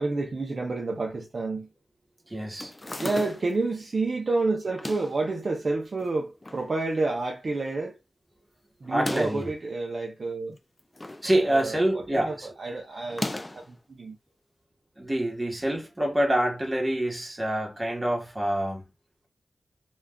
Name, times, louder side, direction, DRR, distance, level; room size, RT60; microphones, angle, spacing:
voice 1, 0.0-1.7 3.0-8.0 8.8-10.6 11.4-14.2, right 3 dB, 50° right, 0.4 m, -29 dB
voice 2, 2.3-2.7 8.9-9.5 11.2-12.5 15.0-18.8, right 1 dB, 20° right, 1.0 m, -26 dB
sound 1, 2.6-3.6 4.6-5.2 6.0-6.7 7.0-7.1 7.3-7.4 8.8-9.5 10.5-11.3 11.6-11.9 13.1-13.7, left 1 dB, 20° left, 0.3 m, -36 dB
2.3 x 2.2 x 3.4 m
wide cardioid pair, 130°, 0 cm